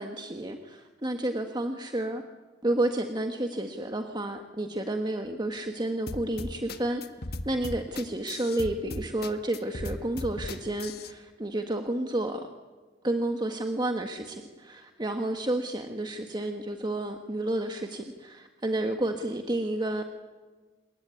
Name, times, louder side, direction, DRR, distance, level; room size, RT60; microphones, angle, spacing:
voice 1, 0.0-2.2 2.6-7.0 7.4-12.5 13.0-20.0, right 1 dB, 25° right, 5 dB, 1.7 m, -31 dB
sound 1, 6.1-11.1, left 2 dB, 60° left, 1.6 m, -37 dB
27.0 x 22.5 x 9.7 m, 1.3 s
head